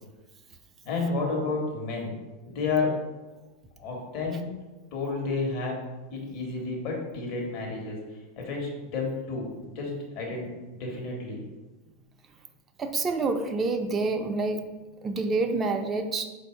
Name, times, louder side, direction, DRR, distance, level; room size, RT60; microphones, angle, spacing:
voice 1, 0.8-2.2 2.5-3.0 3.8-4.5 4.9-5.8 6.1-8.0 8.4-11.4, left 3 dB, 55° left, -1 dB, 1.3 m, -31 dB
voice 2, 12.8-14.6 15.0-16.3, right 3 dB, 25° right, 5 dB, 0.5 m, -27 dB
4.1 x 2.6 x 4.5 m, 1.2 s
hypercardioid pair, 95°, 0 cm